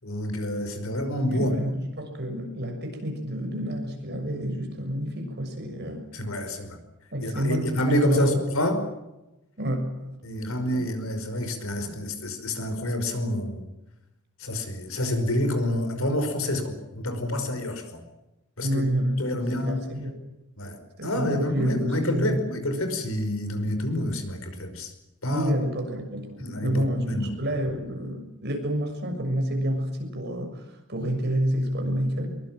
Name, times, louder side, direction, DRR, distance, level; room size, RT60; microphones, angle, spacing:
voice 1, 0.0-1.6 6.1-6.8 7.2-8.8 10.2-13.7 14.4-18.0 18.6-18.8 19.2-19.8 20.6-24.9 25.2-25.5 26.4-27.3, left 1 dB, 70° left, 8 dB, 5.3 m, -28 dB
voice 2, 1.3-6.0 7.1-8.4 9.6-10.1 18.6-20.2 21.0-22.4 25.3-32.4, equal, 50° right, 4 dB, 6.8 m, -29 dB
23.5 x 23.0 x 7.7 m, 0.95 s
head